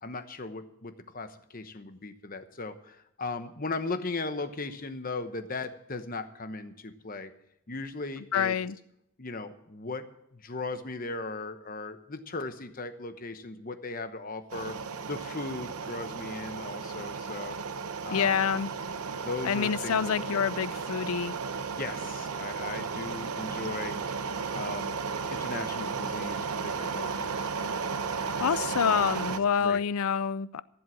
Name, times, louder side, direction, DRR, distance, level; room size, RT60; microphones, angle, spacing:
voice 1, 0.0-7.3 7.7-8.6 9.2-10.1 10.3-14.8 15.1-17.6 18.0-18.5 19.1-20.5 21.8-24.0 24.5-25.0 25.3-27.5 28.4-28.7 29.3-29.8, left 3 dB, 40° left, 1.0 m, -37 dB
voice 2, 8.3-8.8 18.1-18.7 19.4-21.3 28.4-30.6, left 7 dB, 75° left, 0.5 m, -27 dB
sound 1, 14.5-29.4, right 5 dB, 90° right, 0.8 m, -34 dB
14.5 x 7.8 x 7.6 m
head